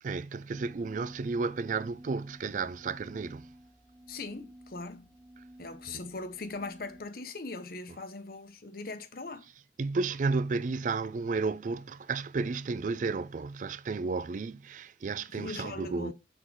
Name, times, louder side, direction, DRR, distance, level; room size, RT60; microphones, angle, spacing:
voice 1, 0.0-3.5 5.4-5.5 5.9-6.0 7.9-8.0 9.8-16.1, right 4 dB, 45° right, 0.3 m, -32 dB
sound 1, 0.5-7.0, right 1 dB, 10° right, 2.0 m, -53 dB
voice 2, 4.1-5.1 5.6-9.5 15.3-16.1, left 3 dB, 55° left, 0.9 m, -40 dB
6.3 x 3.8 x 4.6 m
head